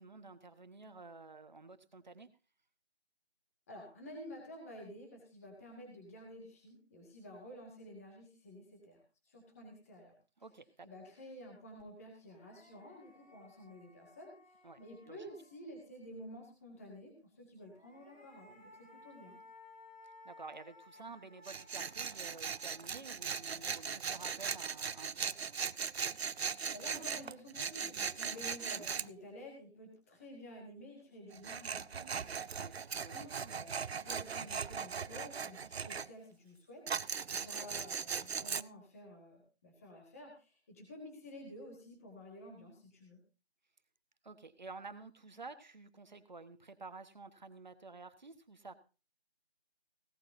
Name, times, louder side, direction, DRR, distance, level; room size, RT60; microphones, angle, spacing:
voice 1, 0.0-2.3 10.4-10.9 14.6-15.2 20.0-25.6 28.7-28.8 32.5-33.2 35.7-36.1 37.5-38.0 44.2-48.7, right 3 dB, 45° right, 11 dB, 1.2 m, -51 dB
voice 2, 3.7-9.0 9.3-10.1 10.8-19.4 26.7-32.7 32.9-43.2, equal, 15° left, 0 dB, 2.0 m, -51 dB
sound 1, 11.8-11.9 12.2-15.9 17.6-24.8, left 2 dB, 45° left, 6.2 m, -60 dB
Tools, 21.4-29.1 31.3-36.1 36.9-38.6, right 6 dB, 75° right, 0.6 m, -39 dB
17.0 x 13.5 x 2.7 m, 0.31 s
figure-of-eight pair, 170°, 32 cm